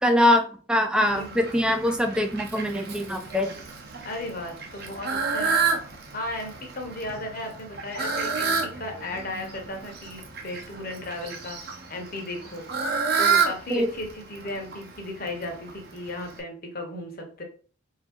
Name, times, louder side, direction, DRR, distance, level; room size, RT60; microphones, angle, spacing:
voice 1, 0.0-3.5 13.7-13.9, left 1 dB, 5° right, 6 dB, 0.4 m, -23 dB
Fowl, 1.0-16.4, right 5 dB, 50° right, 0.8 m, -30 dB
voice 2, 4.0-5.6 6.1-12.8 13.2-17.4, left 1 dB, 45° left, 3 dB, 1.0 m, -35 dB
3.9 x 2.8 x 3.5 m, 0.41 s
head